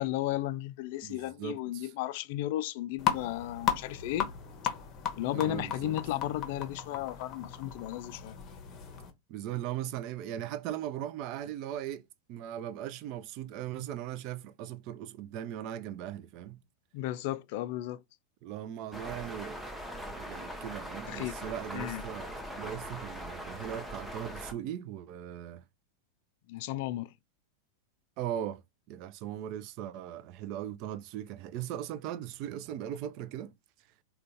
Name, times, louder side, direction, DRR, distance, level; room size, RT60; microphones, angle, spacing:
voice 1, 0.0-4.3 5.2-8.3 16.9-18.0 21.1-21.3 21.7-22.0 26.5-27.1, left 14 dB, 50° left, 0.3 m, -34 dB
voice 2, 1.0-1.9 5.3-5.9 9.3-12.0 12.3-16.6 18.4-19.6 20.1-25.6 28.2-28.6 28.9-33.6, right 11 dB, 40° right, 0.4 m, -39 dB
sound 1, 3.0-9.1, left 9 dB, 30° left, 0.8 m, -36 dB
sound 2, 18.9-24.5, equal, ahead, 0.7 m, -41 dB
3.8 x 2.2 x 3.4 m
figure-of-eight pair, 90°, 0 cm